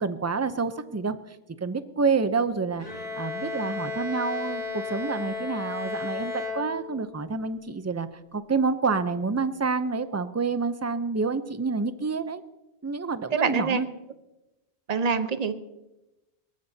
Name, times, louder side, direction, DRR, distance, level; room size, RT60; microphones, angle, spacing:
voice 1, 0.0-1.4 1.6-12.4 12.8-13.9, right 4 dB, 20° right, 11 dB, 0.4 m, -28 dB
Bowed string instrument, 2.8-7.2, left 4 dB, 70° left, 6.2 m, -34 dB
voice 2, 13.3-13.8 14.9-15.5, right 5 dB, 40° right, 10 dB, 0.8 m, -25 dB
22.0 x 17.5 x 2.7 m, 0.99 s
omnidirectional pair, 1.1 m